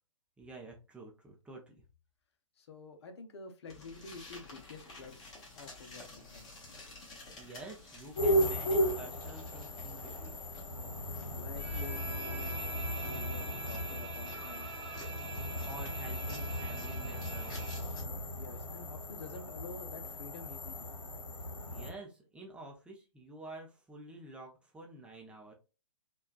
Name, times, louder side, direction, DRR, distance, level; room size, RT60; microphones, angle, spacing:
voice 1, 0.4-1.8 7.3-10.4 15.6-17.8 21.7-25.5, right 2 dB, 5° right, 0.6 m, -49 dB
voice 2, 2.6-6.8 11.3-12.6 13.0-14.7 18.4-20.9, left 4 dB, 55° left, 0.7 m, -49 dB
sound 1, 3.7-18.0, left 3 dB, 25° left, 1.4 m, -52 dB
sound 2, 8.2-21.9, equal, 70° left, 1.2 m, -36 dB
Bowed string instrument, 11.6-17.9, right 5 dB, 50° right, 1.0 m, -46 dB
4.4 x 2.3 x 2.3 m
figure-of-eight pair, 125°, 16 cm